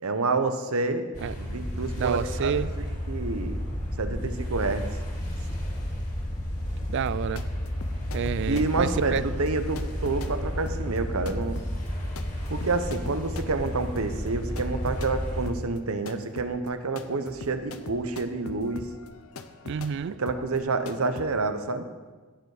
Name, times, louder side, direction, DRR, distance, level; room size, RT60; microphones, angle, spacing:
voice 1, 0.0-1.1 1.3-2.6 3.1-3.6 4.0-4.9 8.4-11.6 12.5-18.9 20.2-21.9, right 3 dB, 75° right, 9 dB, 0.9 m, -28 dB
sound 1, 1.1-15.5, equal, 35° left, 2.3 m, -32 dB
voice 2, 2.0-2.7 6.9-7.4 8.1-9.2 19.6-20.2, right 7 dB, 55° right, 19 dB, 0.3 m, -29 dB
sound 2, 7.0-15.2 15.5-21.3, left 3 dB, 75° left, 0.8 m, -43 dB
16.5 x 6.9 x 4.9 m, 1.3 s
head